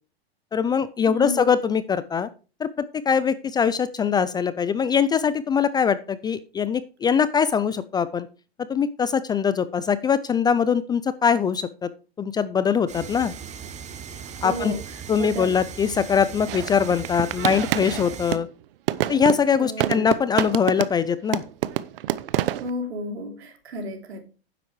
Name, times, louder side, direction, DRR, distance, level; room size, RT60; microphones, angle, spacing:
voice 1, 0.5-2.3 2.6-8.3 8.7-11.9 12.2-13.3 14.4-14.7 15.1-18.5 19.1-21.4, left 7 dB, 15° left, 15 dB, 0.4 m, -22 dB
voice 2, 1.1-1.6 14.4-15.6 19.6-20.1 22.6-24.2, equal, 80° right, 5 dB, 3.2 m, -33 dB
sound 1, 12.9-18.4, right 7 dB, 20° right, 1.2 m, -38 dB
sound 2, 16.5-18.5 18.9-21.1 21.3-22.7, right 13 dB, 60° right, 0.9 m, -27 dB
10.0 x 7.7 x 4.7 m, 0.34 s
hypercardioid pair, 115°, 32 cm